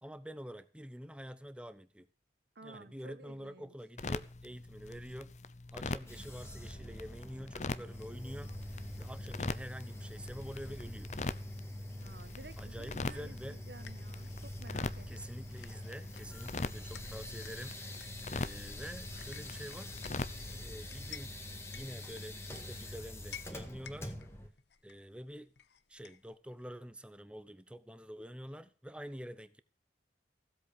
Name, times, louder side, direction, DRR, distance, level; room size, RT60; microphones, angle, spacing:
voice 1, 0.0-2.1 2.6-5.3 5.7-8.5 9.0-11.1 12.6-13.6 15.1-20.2 20.6-21.4 21.7-24.1 24.8-25.5 25.9-29.6, equal, 5° right, 0.8 m, -47 dB
voice 2, 2.5-3.7 12.0-15.4, right 2 dB, 65° right, 1.3 m, -54 dB
sound 1, 4.0-20.7, left 3 dB, 40° left, 0.6 m, -43 dB
sound 2, 6.1-24.5, left 1 dB, 15° left, 1.8 m, -45 dB
sound 3, 13.8-26.4, left 9 dB, 75° left, 1.0 m, -56 dB
15.5 x 8.1 x 6.8 m
head